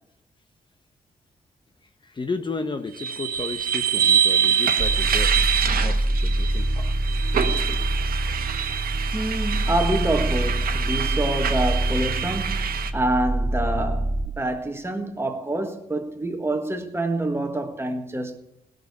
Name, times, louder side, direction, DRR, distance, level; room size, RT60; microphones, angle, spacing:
voice 1, 2.0-5.4 5.8-6.9, left 3 dB, 30° left, 0.9 m, -33 dB
sound 1, 2.9-12.9, right 8 dB, 80° right, 1.3 m, -25 dB
sound 2, 4.8-14.3, right 1 dB, 35° right, 0.7 m, -25 dB
voice 2, 9.1-18.4, right 1 dB, 15° right, 1.7 m, -27 dB
18.0 x 6.6 x 8.2 m
wide cardioid pair, 110°, 15 cm